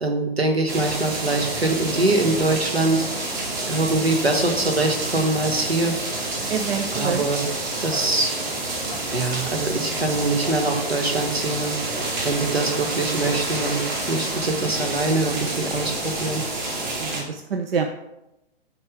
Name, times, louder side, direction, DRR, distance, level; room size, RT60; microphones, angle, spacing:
voice 1, 0.0-3.0 3.7-5.9 6.9-7.5 7.8-8.3 9.1-11.8 12.2-16.4, right 2 dB, 85° right, 4 dB, 1.2 m, -23 dB
sound 1, 0.7-17.2, right 2 dB, 50° right, 2.0 m, -28 dB
voice 2, 6.5-7.2 17.0-17.9, right 6 dB, 70° right, 6 dB, 0.6 m, -26 dB
6.9 x 3.3 x 4.9 m, 0.92 s
figure-of-eight pair, 115°, 30 cm